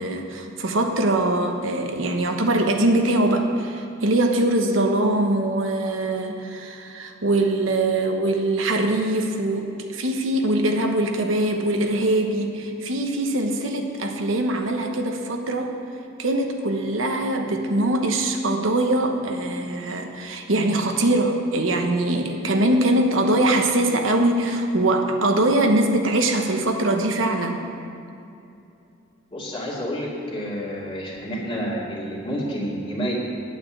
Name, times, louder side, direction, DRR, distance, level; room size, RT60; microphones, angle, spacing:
voice 1, 0.0-15.7 16.2-27.6, right 1 dB, 85° right, 3 dB, 1.1 m, -22 dB
voice 2, 29.3-33.1, equal, 25° left, -4 dB, 2.3 m, -29 dB
9.4 x 8.8 x 7.2 m, 2.7 s
head